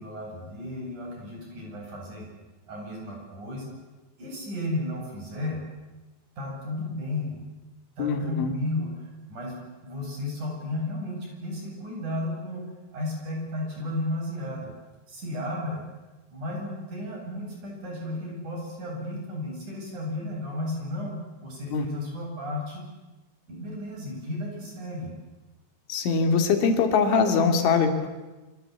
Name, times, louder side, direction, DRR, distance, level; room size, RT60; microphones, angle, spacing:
voice 1, 0.0-2.3 2.7-3.7 4.2-5.6 6.4-7.4 8.0-12.6 12.9-14.7 15.1-15.8 16.3-22.8 23.5-25.1, left 1 dB, 40° right, 0 dB, 9.5 m, -33 dB
voice 2, 8.0-8.5 21.7-21.9 25.9-28.1, left 5 dB, 90° left, 6 dB, 5.0 m, -22 dB
28.0 x 25.0 x 8.6 m, 1.2 s
omnidirectional pair, 5.3 m